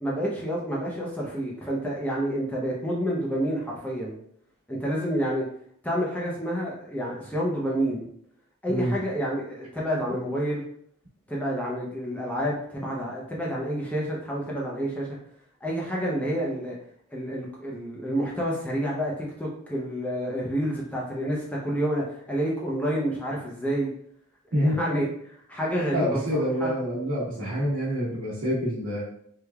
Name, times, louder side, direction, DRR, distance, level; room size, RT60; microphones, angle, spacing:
voice 1, 0.0-4.2 4.7-5.4 5.8-8.0 8.6-10.6 11.3-15.2 15.6-16.8 17.1-23.9 24.6-26.7, equal, 5° left, -4 dB, 0.5 m, -29 dB
voice 2, 25.9-29.0, equal, 65° right, -7 dB, 1.1 m, -26 dB
3.3 x 3.2 x 2.2 m, 0.67 s
head